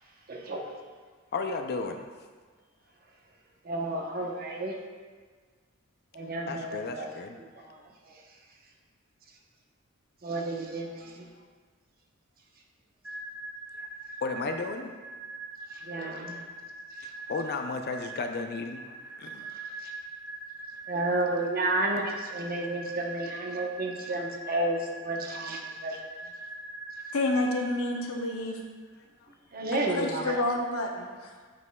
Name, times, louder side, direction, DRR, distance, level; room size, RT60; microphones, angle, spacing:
voice 1, 0.3-0.7 3.6-4.8 6.1-7.8 10.2-11.3 15.8-16.4 19.8-19.9 20.9-26.1 29.5-30.4, right 2 dB, 45° right, 0 dB, 0.8 m, -32 dB
voice 2, 1.3-2.1 6.5-7.4 14.2-14.9 17.0-18.8 19.2-19.5, left 4 dB, 50° left, 5 dB, 0.4 m, -33 dB
sound 1, 13.0-28.6, right 2 dB, 5° right, 0.6 m, -42 dB
voice 3, 27.1-28.6 29.7-31.4, left 2 dB, 75° left, 2 dB, 0.7 m, -29 dB
7.9 x 5.3 x 2.2 m, 1.5 s
head